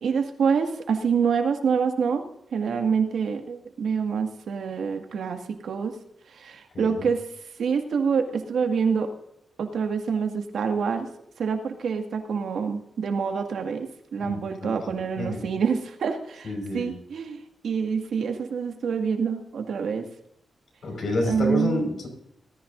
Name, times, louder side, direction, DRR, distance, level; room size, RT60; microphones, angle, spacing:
voice 1, 0.0-2.2 2.5-5.9 6.3-7.2 7.6-9.1 9.6-11.1 11.4-20.1 21.3-21.8, right 6 dB, 80° right, 4 dB, 1.9 m, -26 dB
voice 2, 6.7-7.0 14.2-15.4 16.4-16.9 20.8-22.1, left 1 dB, 60° left, 3 dB, 5.1 m, -29 dB
19.0 x 14.0 x 2.6 m, 0.76 s
cardioid pair, 105°, 0 cm